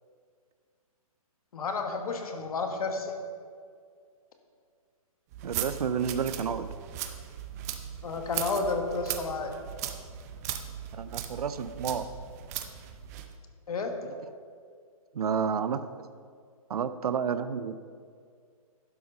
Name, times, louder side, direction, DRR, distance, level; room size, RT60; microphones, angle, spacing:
voice 1, 1.5-3.1 8.0-9.5 13.7-14.0, left 4 dB, 75° left, 4 dB, 1.4 m, -31 dB
sound 1, 5.3-13.3, right 10 dB, 25° right, 0.6 m, -38 dB
voice 2, 5.4-6.7 10.9-12.1 15.1-16.1 16.7-17.8, right 7 dB, 90° right, 12 dB, 0.5 m, -30 dB
11.5 x 5.8 x 5.3 m, 2.1 s
hypercardioid pair, 155°, 19 cm